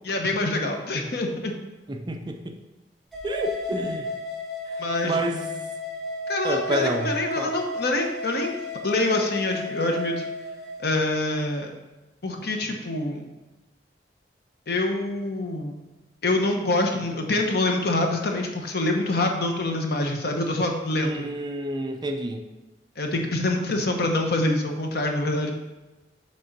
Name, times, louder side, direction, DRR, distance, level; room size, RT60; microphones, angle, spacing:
voice 1, 0.0-1.5 4.8-5.2 6.3-8.5 8.8-10.1 10.8-11.7 12.2-13.2 14.7-15.8 16.2-21.2 23.0-25.5, left 2 dB, 60° left, 3 dB, 1.0 m, -25 dB
voice 2, 1.9-2.5 3.2-4.1 4.7-5.7 6.4-7.6 21.0-22.5, right 1 dB, 25° right, 5 dB, 0.5 m, -29 dB
sound 1, 3.1-10.8, left 2 dB, ahead, 1.3 m, -33 dB
6.5 x 3.6 x 5.9 m, 1.1 s
head